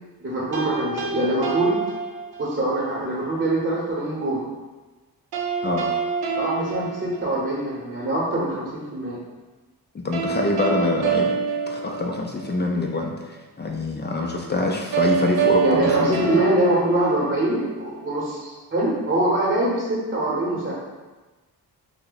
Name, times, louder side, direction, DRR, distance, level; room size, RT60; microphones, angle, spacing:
voice 1, 0.2-1.8 2.4-4.5 6.4-9.2 15.6-20.7, right 1 dB, 30° right, -6 dB, 0.9 m, -24 dB
sound 1, 0.5-2.7 5.3-7.8 10.1-12.6 14.9-17.7, right 6 dB, 75° right, 0.5 m, -26 dB
voice 2, 9.9-11.3 11.7-16.4, left 2 dB, 30° left, 0 dB, 0.4 m, -25 dB
2.8 x 2.1 x 3.9 m, 1.2 s
cardioid pair, 60°, 38 cm